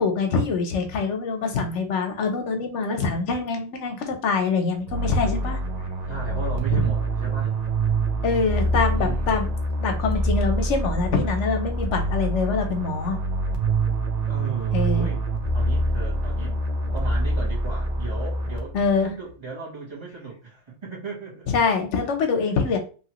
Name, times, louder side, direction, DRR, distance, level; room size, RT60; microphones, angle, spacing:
voice 1, 0.0-5.6 6.7-6.8 8.2-13.2 14.7-15.1 18.7-19.1 21.5-22.8, left 4 dB, 85° left, 1.0 m, -24 dB
sound 1, 4.9-19.0, right 2 dB, 50° right, 0.6 m, -25 dB
voice 2, 6.1-7.5 8.9-9.5 14.3-15.2 15.5-16.6 16.9-21.6, right 4 dB, 25° right, 1.0 m, -36 dB
2.9 x 2.4 x 2.9 m
omnidirectional pair, 1.2 m